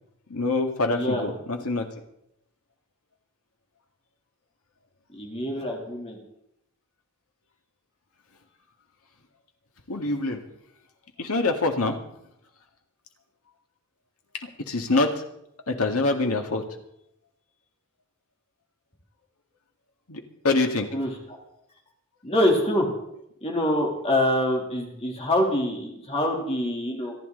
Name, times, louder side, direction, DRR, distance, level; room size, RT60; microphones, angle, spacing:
voice 1, 0.3-1.9 9.9-10.4 11.2-12.0 14.4-15.2 15.7-16.6 20.1-20.9, left 3 dB, 70° left, 3 dB, 2.1 m, -25 dB
voice 2, 0.9-1.2 5.1-6.2 20.9-21.1 22.2-22.9 23.4-27.2, left 1 dB, 25° left, 0 dB, 3.3 m, -25 dB
26.5 x 10.5 x 4.0 m, 0.78 s
head